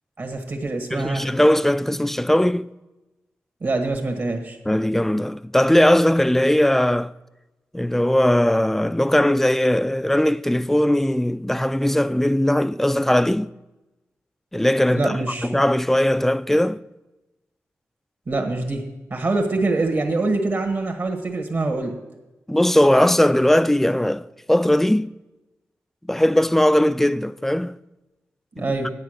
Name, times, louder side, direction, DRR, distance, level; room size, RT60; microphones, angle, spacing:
voice 1, 0.2-1.3 3.6-4.6 14.9-15.5 18.3-18.8 19.1-22.0 28.5-28.9, right 2 dB, 55° right, 1.5 m, -24 dB
voice 2, 0.9-2.7 4.7-7.1 7.7-13.5 14.5-16.8 22.5-25.1 26.0-27.8 28.6-28.7, left 1 dB, 5° left, 0.3 m, -19 dB
9.5 x 8.1 x 6.5 m
cardioid pair, 75°, 5 cm